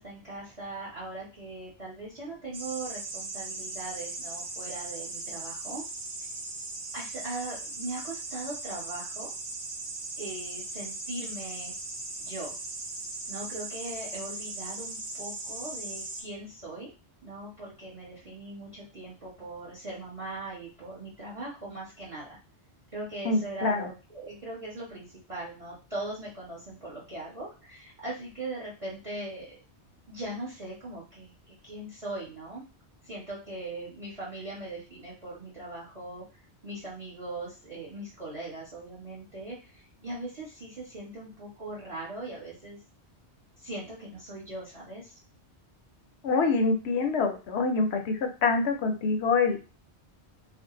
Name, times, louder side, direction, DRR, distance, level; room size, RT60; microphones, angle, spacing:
voice 1, 0.0-5.8 6.9-9.3 10.2-11.7 12.2-12.5 13.3-16.9 17.2-22.4 22.9-29.5 30.1-32.6 33.0-36.2 36.6-42.8 43.6-45.2, right 2 dB, 30° right, -7 dB, 1.1 m, -40 dB
sound 1, 2.5-16.2, right 3 dB, 65° right, 0.9 m, -38 dB
voice 2, 23.2-23.9 46.2-49.6, left 4 dB, 75° left, 5 dB, 0.9 m, -26 dB
2.6 x 2.1 x 3.7 m, 0.32 s
omnidirectional pair, 1.1 m